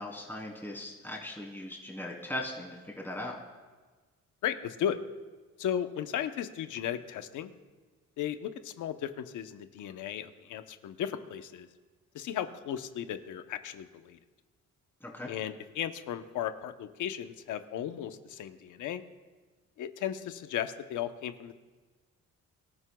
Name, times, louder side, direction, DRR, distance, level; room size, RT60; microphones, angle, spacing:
voice 1, 0.0-3.3 15.0-15.3, left 1 dB, 5° left, -2 dB, 3.3 m, -39 dB
voice 2, 4.4-5.0 5.6-7.5 8.2-11.7 12.1-14.2 15.3-19.0 19.8-21.5, left 10 dB, 80° left, 9 dB, 0.9 m, -35 dB
24.5 x 13.0 x 2.3 m, 1.3 s
cardioid pair, 90°, 30 cm